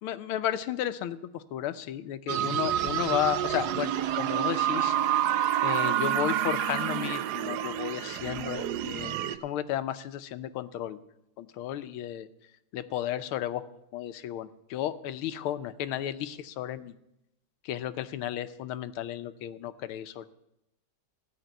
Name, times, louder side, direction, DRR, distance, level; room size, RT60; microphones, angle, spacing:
voice 1, 0.0-5.0 5.6-11.0 11.4-12.3 12.7-13.6 13.9-16.9 17.6-20.3, left 11 dB, 90° left, 12 dB, 1.6 m, -33 dB
sound 1, 2.3-9.4, right 11 dB, 70° right, 1.0 m, -28 dB
15.5 x 5.3 x 9.1 m, 0.84 s
omnidirectional pair, 2.3 m